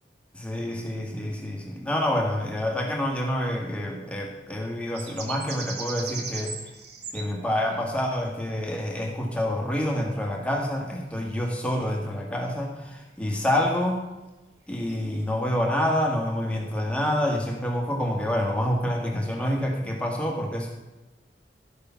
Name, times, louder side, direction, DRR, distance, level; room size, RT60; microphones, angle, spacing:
voice 1, 0.3-6.6 7.1-14.0 14.7-20.7, left 1 dB, 5° left, 0 dB, 1.6 m, -27 dB
sound 1, 5.0-7.9 9.7-10.1 10.6-10.7 14.8-15.2 15.5-15.8 16.1-16.2, right 5 dB, 70° right, 1.4 m, -38 dB
12.5 x 6.7 x 5.7 m, 1.1 s
head